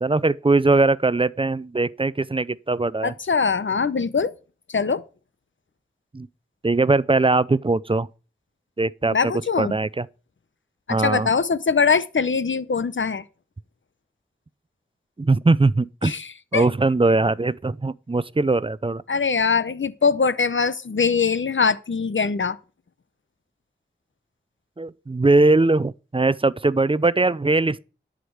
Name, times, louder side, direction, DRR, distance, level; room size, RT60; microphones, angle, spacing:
voice 1, 0.0-3.1 6.1-6.3 6.6-8.1 8.8-9.3 9.6-10.1 10.9-11.3 15.2-16.1 16.5-19.0 24.8-27.8, right 3 dB, 25° right, 0.5 m, -20 dB
voice 2, 3.0-4.3 4.7-5.0 9.1-9.7 10.9-13.2 16.0-16.7 19.1-22.6, left 5 dB, 80° left, 0.8 m, -22 dB
11.0 x 5.1 x 7.9 m
wide cardioid pair, 55°, 20 cm